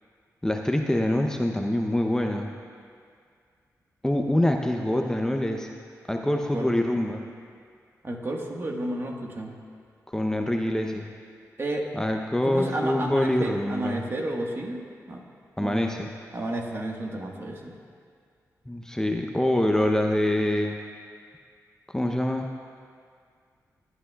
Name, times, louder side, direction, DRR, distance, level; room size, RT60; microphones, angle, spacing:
voice 1, 0.4-2.5 4.0-5.7 6.1-7.2 10.1-11.1 11.9-14.0 15.6-16.1 18.7-20.8 21.9-22.5, left 1 dB, 10° left, 2 dB, 0.6 m, -25 dB
voice 2, 8.0-9.5 11.6-11.9 12.4-14.8 15.1-15.2 15.6-15.9 16.3-17.7, right 1 dB, 40° right, 0 dB, 1.4 m, -31 dB
16.5 x 9.9 x 2.3 m, 2.2 s
cardioid pair, 60°, 6 cm